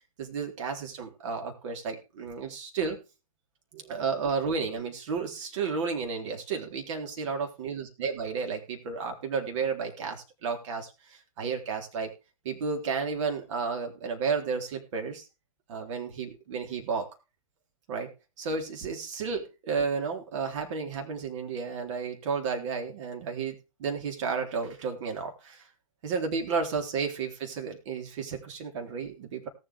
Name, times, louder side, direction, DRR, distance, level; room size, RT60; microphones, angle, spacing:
voice 1, 0.2-3.0 3.7-12.1 12.4-15.3 15.7-17.1 17.9-18.1 18.4-25.7 26.0-29.5, right 5 dB, 50° right, 3 dB, 3.8 m, -32 dB
18.0 x 7.9 x 3.6 m, 0.30 s
hypercardioid pair, 130°, 19 cm